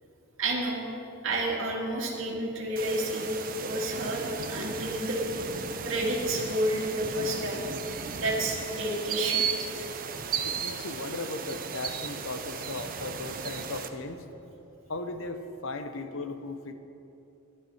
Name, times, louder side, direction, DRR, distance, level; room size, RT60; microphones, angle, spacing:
voice 1, 0.4-0.8 1.2-3.2 3.6-5.2 5.8-7.7 8.2-9.5, right 1 dB, 60° right, -2 dB, 2.3 m, -30 dB
sound 1, 2.8-13.9, right 6 dB, 40° right, 0.6 m, -35 dB
voice 2, 10.4-14.2 14.9-16.7, left 2 dB, 60° left, 8 dB, 0.8 m, -37 dB
12.0 x 11.0 x 5.6 m, 2.9 s
head